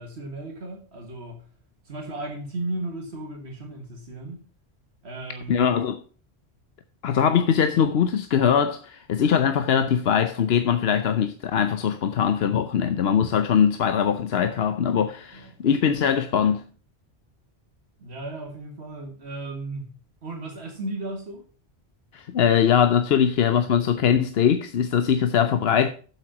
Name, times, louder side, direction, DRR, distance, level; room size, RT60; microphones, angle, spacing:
voice 1, 0.0-1.4 1.9-4.4 5.0-5.7 15.3-15.5 18.0-19.9 20.2-21.4, right 2 dB, 75° right, 1.8 m, -35 dB
voice 2, 5.5-6.0 7.0-16.6 22.1-25.9, left 8 dB, 70° left, 0.9 m, -21 dB
7.8 x 7.5 x 5.8 m
omnidirectional pair, 1.1 m